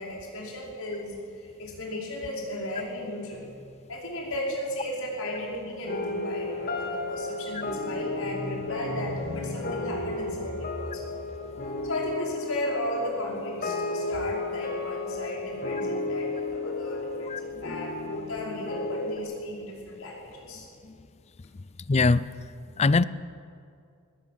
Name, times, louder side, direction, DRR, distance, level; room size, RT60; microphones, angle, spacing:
voice 1, 0.0-3.5 3.9-11.2 11.8-20.7, left 1 dB, 80° left, 5.3 m, -35 dB
sound 1, 5.9-19.2, left 2 dB, 45° left, 2.0 m, -33 dB
voice 2, 21.9-22.3 22.8-23.0, left 3 dB, 30° left, 0.5 m, -20 dB
20.0 x 17.5 x 7.6 m
head